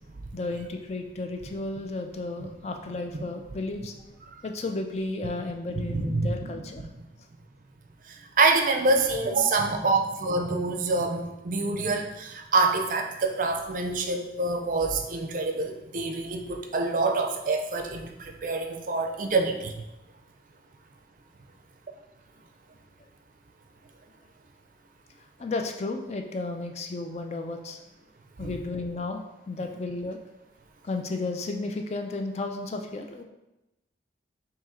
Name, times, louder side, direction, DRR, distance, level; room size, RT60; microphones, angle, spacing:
voice 1, 0.3-3.9 4.4-6.9 25.4-27.8 28.4-30.2 30.8-33.2, left 2 dB, 35° left, 4 dB, 0.4 m, -33 dB
voice 2, 5.9-6.5 6.8-7.1 8.1-19.8 28.4-28.5, right 3 dB, 45° right, 4 dB, 0.4 m, -26 dB
3.7 x 2.8 x 4.2 m, 0.96 s
head